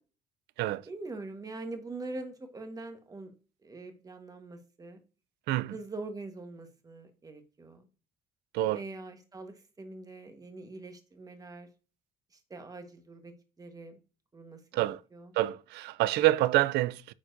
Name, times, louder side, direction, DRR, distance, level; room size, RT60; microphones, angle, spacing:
voice 1, 0.9-3.3 3.6-5.0 5.7-7.8 8.6-11.7 12.3-14.0 14.3-15.3, right 2 dB, 20° right, 1.3 m, -43 dB
voice 2, 15.4-17.1, right 16 dB, 80° right, 0.4 m, -27 dB
8.5 x 4.6 x 2.6 m
cardioid pair, 110°, 17 cm